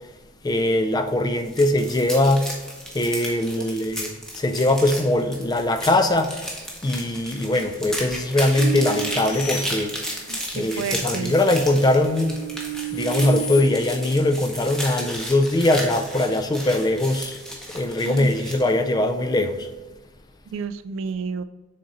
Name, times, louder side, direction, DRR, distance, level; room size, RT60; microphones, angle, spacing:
voice 1, 0.4-2.5 2.9-4.1 4.4-6.5 6.8-9.9 10.5-12.4 12.9-17.4 17.7-19.7, left 1 dB, 20° left, 0.3 m, -21 dB
sound 1, 1.3-18.7, equal, 5° left, 0.8 m, -34 dB
sound 2, 8.6-10.5 11.1-13.6, right 6 dB, 85° left, 1.7 m, -33 dB
voice 2, 10.3-11.4 18.0-18.6 20.5-21.4, right 5 dB, 75° right, 0.3 m, -31 dB
6.6 x 3.8 x 3.9 m
head